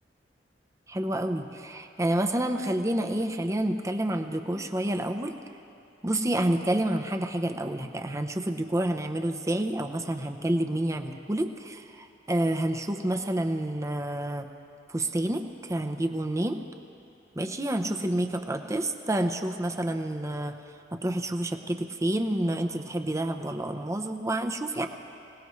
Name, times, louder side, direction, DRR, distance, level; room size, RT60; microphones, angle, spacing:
voice 1, 0.9-5.3 6.0-14.5 14.9-16.6 17.4-20.6 21.0-24.9, right 1 dB, 15° right, 5 dB, 0.8 m, -29 dB
25.5 x 18.0 x 3.2 m, 2.7 s
head